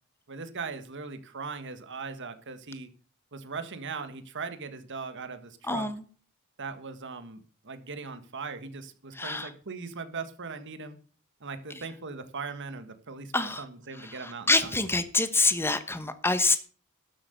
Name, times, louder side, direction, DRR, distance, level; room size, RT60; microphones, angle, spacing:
voice 1, 0.3-2.9 3.3-5.9 6.6-11.0 11.4-14.8, right 4 dB, 60° right, 10 dB, 1.6 m, -39 dB
voice 2, 5.7-6.0 9.1-9.5 13.3-13.6 14.0-16.6, left 3 dB, 10° left, 11 dB, 1.1 m, -26 dB
12.5 x 7.7 x 6.8 m, 0.42 s
head